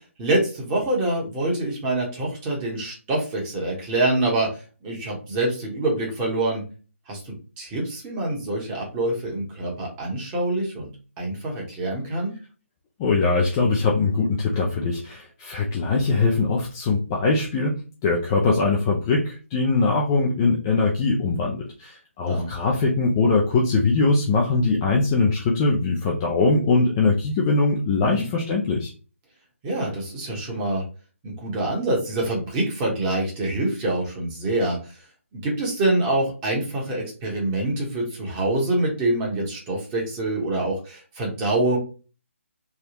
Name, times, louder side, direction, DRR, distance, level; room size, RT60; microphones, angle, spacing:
voice 1, 0.2-4.5 4.8-6.6 7.1-10.9 11.2-12.3 22.3-22.5 28.0-28.3 29.6-30.8 31.2-34.8 35.3-41.8, right 2 dB, 15° right, -2 dB, 1.1 m, -25 dB
voice 2, 13.0-17.7 18.0-28.9, left 3 dB, 20° left, -2 dB, 0.4 m, -21 dB
3.4 x 2.3 x 2.9 m, 0.35 s
figure-of-eight pair, 155°, 7 cm